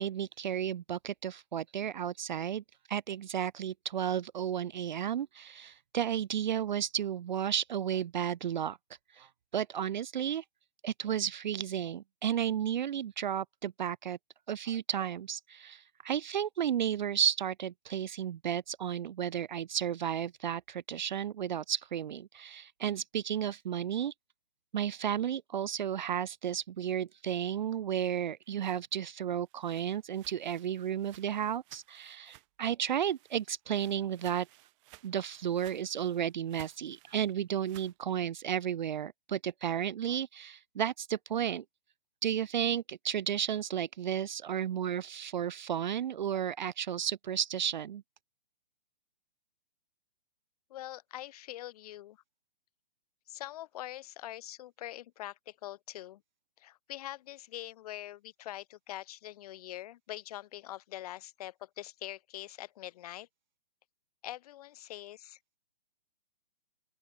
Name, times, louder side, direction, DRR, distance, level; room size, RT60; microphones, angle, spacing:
voice 1, 0.0-2.6 2.9-8.8 9.1-10.4 10.8-14.2 14.5-24.1 24.7-34.5 35.0-41.6 42.2-48.0, right 9 dB, 50° right, 0.5 m, -33 dB
sound 1, 28.4-32.7 33.0-38.0, right 25 dB, 30° right, 4.8 m, -59 dB
voice 2, 50.7-52.2 53.3-56.2 56.6-63.3 64.2-65.6, left 14 dB, 40° left, 2.6 m, -44 dB
open air
figure-of-eight pair, 130°, 29 cm